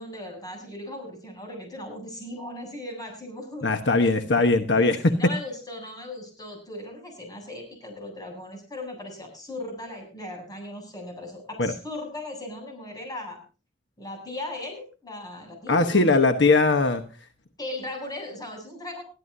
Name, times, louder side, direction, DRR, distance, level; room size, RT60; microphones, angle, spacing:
voice 1, 0.0-3.7 4.0-4.1 4.7-13.4 14.0-16.2 17.6-19.0, left 1 dB, 20° left, 2 dB, 7.9 m, -38 dB
voice 2, 3.6-5.1 11.6-11.7 15.7-17.0, left 3 dB, 70° left, 6 dB, 1.2 m, -20 dB
22.0 x 13.0 x 2.7 m, 0.34 s
head